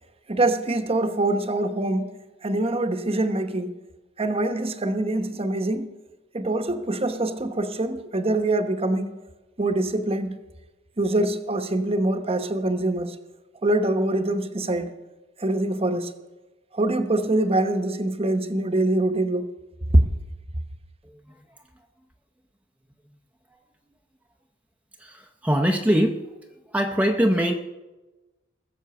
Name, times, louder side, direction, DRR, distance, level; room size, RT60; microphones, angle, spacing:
voice 1, 0.3-2.1 2.4-3.7 4.2-5.9 6.3-9.1 9.6-10.4 11.0-13.1 13.6-14.9 15.4-16.1 16.7-19.5, right 2 dB, 30° right, 1.0 m, -24 dB
voice 2, 25.0-26.3 26.7-27.5, equal, 10° right, 0.7 m, -22 dB
20.5 x 7.3 x 6.8 m
head